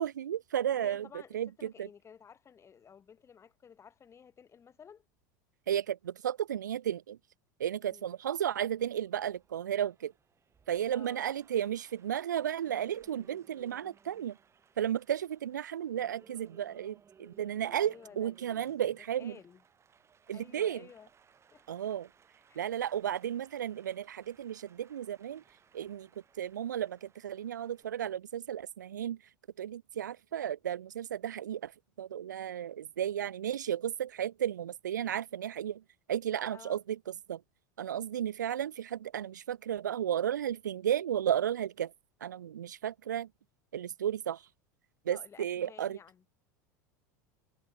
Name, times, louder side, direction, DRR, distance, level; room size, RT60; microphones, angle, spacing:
voice 1, 0.0-1.1 1.3-1.9 5.7-7.2 7.6-10.1 10.7-14.4 14.8-19.3 20.3-20.8 21.7-22.1 22.6-25.4 25.7-26.1 26.4-29.2 29.6-31.7 32.0-35.8 36.1-37.0 37.3-37.4 37.8-41.9 42.2-43.3 43.7-44.4 45.1-46.0, right 10 dB, 90° right, 0.7 m, -33 dB
voice 2, 0.7-5.0 7.8-8.1 10.9-11.3 17.8-19.6 20.3-21.1 21.5-21.6 22.5-22.7 36.5-36.8 45.1-46.2, left 7 dB, 30° left, 7.4 m, -54 dB
Applause, 8.1-27.9, right 7 dB, 30° right, 7.9 m, -63 dB
hypercardioid pair, 90°, 10 cm